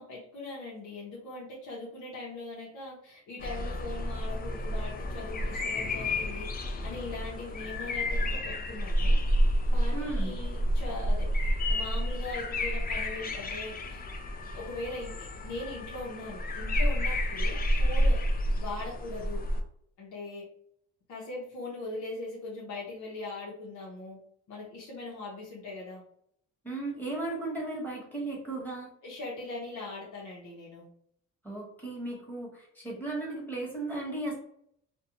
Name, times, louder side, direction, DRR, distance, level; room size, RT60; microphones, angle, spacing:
voice 1, 0.0-6.5 6.8-9.2 9.7-11.3 11.7-14.0 14.5-18.2 18.6-19.4 20.0-20.4 21.1-24.2 24.5-26.0 29.0-30.9, left 2 dB, 80° left, -4 dB, 0.8 m, -40 dB
sound 1, 3.4-19.6, equal, 30° left, 0.4 m, -29 dB
voice 2, 9.9-10.3 26.6-28.9 31.4-34.4, right 2 dB, 5° left, -4 dB, 1.2 m, -35 dB
2.5 x 2.2 x 2.9 m, 0.69 s
cardioid pair, 90°, 30 cm